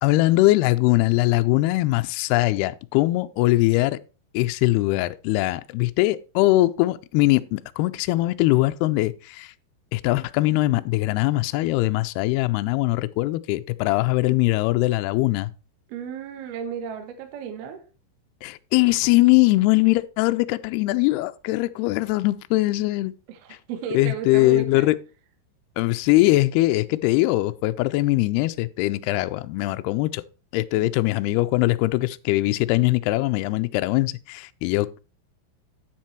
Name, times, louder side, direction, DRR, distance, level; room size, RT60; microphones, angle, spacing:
voice 1, 0.0-4.0 4.3-9.5 9.9-15.5 18.4-23.1 23.9-25.0 25.8-30.2 30.5-35.0, left 19 dB, 90° left, 2.3 m, -21 dB
voice 2, 15.9-17.8 23.3-24.9 30.7-30.9, right 7 dB, 65° right, 2.9 m, -34 dB
9.2 x 7.4 x 4.5 m
omnidirectional pair, 5.2 m